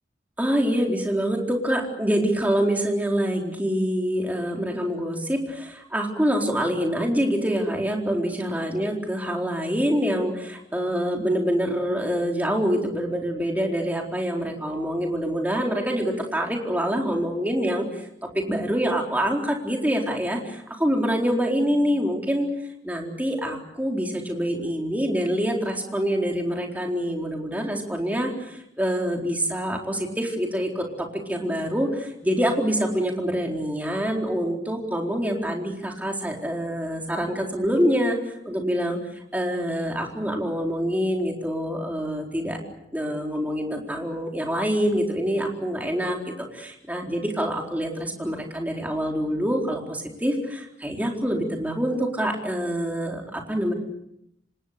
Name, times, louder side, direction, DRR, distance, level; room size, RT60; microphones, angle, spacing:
voice 1, 0.4-18.1 18.3-22.5 22.8-39.0 39.3-42.6 42.9-53.7, equal, 10° right, 0 dB, 4.2 m, -26 dB
28.0 x 25.5 x 6.8 m, 0.79 s
head